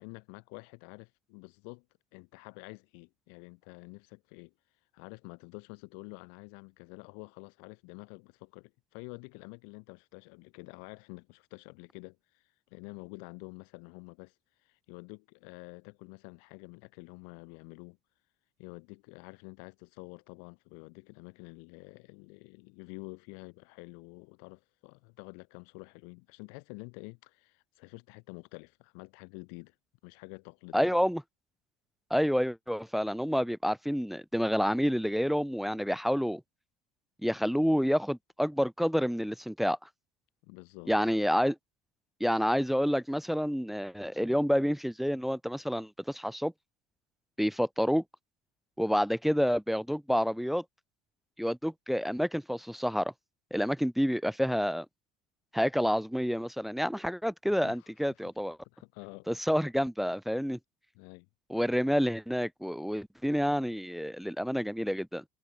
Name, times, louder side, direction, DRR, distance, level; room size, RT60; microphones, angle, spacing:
voice 1, 0.0-1.9 2.1-4.5 4.9-12.4 12.7-14.3 14.6-18.0 18.6-29.7 30.0-31.0 40.4-41.0 57.4-58.2 58.6-59.3 60.9-61.3, left 40 dB or more, 80° left, 3.1 m, -48 dB
voice 2, 30.7-31.2 32.1-36.4 37.2-39.8 40.9-41.6 42.2-46.5 47.4-48.0 48.8-50.6 51.4-53.1 53.5-54.9 55.5-58.6 59.3-60.6 61.5-65.2, equal, ahead, 0.8 m, -28 dB
cardioid pair, 170°, 18 cm